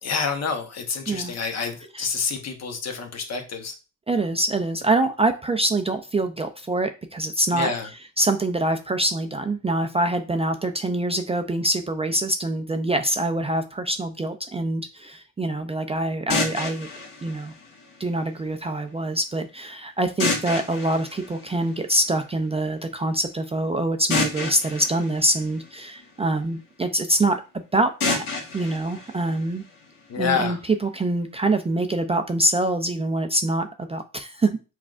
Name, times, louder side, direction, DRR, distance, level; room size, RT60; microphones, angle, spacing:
voice 1, 0.0-3.7 7.5-7.9 30.1-30.6, left 5 dB, 50° left, 4 dB, 1.0 m, -28 dB
voice 2, 4.1-7.7 8.2-16.9 17.2-17.5 18.0-27.4 27.7-28.2 28.5-29.6 30.2-34.6, right 1 dB, 20° right, 6 dB, 0.4 m, -25 dB
sound 1, 16.3-18.3 20.2-22.2 24.1-26.3 28.0-30.0, left 3 dB, 70° left, 1.7 m, -30 dB
5.8 x 2.4 x 2.4 m, 0.31 s
cardioid pair, 85°, 33 cm